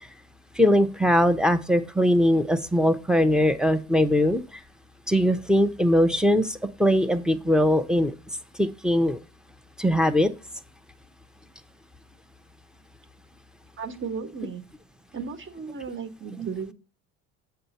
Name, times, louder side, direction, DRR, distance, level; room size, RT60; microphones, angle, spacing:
voice 1, 0.6-4.4 5.1-8.1 8.6-9.2 9.8-10.3 16.4-16.5, equal, ahead, 7 dB, 0.8 m, -21 dB
voice 2, 13.8-14.6 15.1-16.7, right 6 dB, 35° right, 9 dB, 1.5 m, -35 dB
7.7 x 5.7 x 4.2 m, 0.33 s
supercardioid pair, 90°, 36 cm